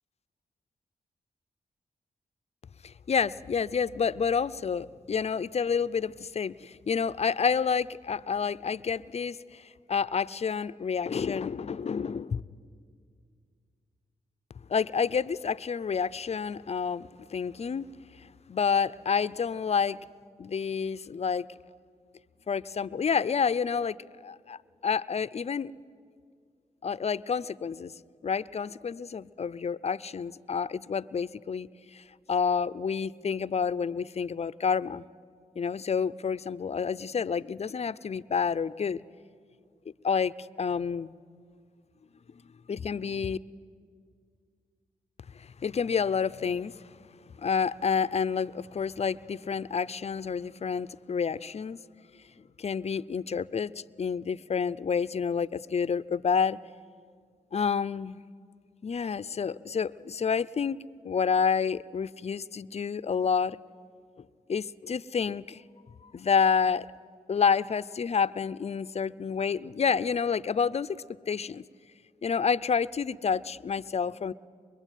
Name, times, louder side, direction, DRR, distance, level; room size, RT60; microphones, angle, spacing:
voice 1, 2.8-12.4 14.7-17.9 18.5-20.0 20.4-21.5 22.5-24.0 24.2-25.7 26.8-27.9 28.2-35.0 35.6-39.0 40.0-41.1 42.7-43.4 45.4-46.9 47.4-51.8 52.6-56.6 57.5-58.2 58.8-60.8 61.0-63.6 64.5-65.6 66.0-66.9 67.3-71.0 71.3-71.6 72.2-74.3, left 6 dB, 50° left, 16 dB, 0.6 m, -29 dB
23.5 x 23.0 x 9.1 m, 2.1 s
cardioid pair, 65°, 14 cm